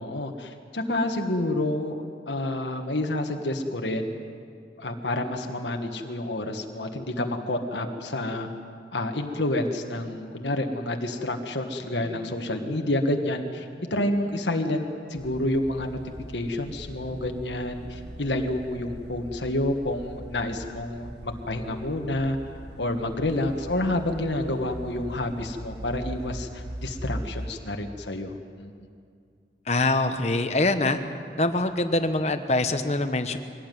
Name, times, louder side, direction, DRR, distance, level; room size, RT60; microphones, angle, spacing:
voice 1, 0.0-4.1 4.8-8.5 8.9-16.0 16.3-22.4 22.8-28.7, left 1 dB, 90° left, 4 dB, 1.6 m, -29 dB
sound 1, 9.3-19.1, equal, 30° right, 2.4 m, -51 dB
sound 2, 15.2-27.5, right 1 dB, 80° right, 1.5 m, -41 dB
voice 2, 29.7-31.0 31.4-33.4, left 2 dB, 40° left, 8 dB, 1.2 m, -24 dB
23.0 x 17.5 x 9.4 m, 2.3 s
head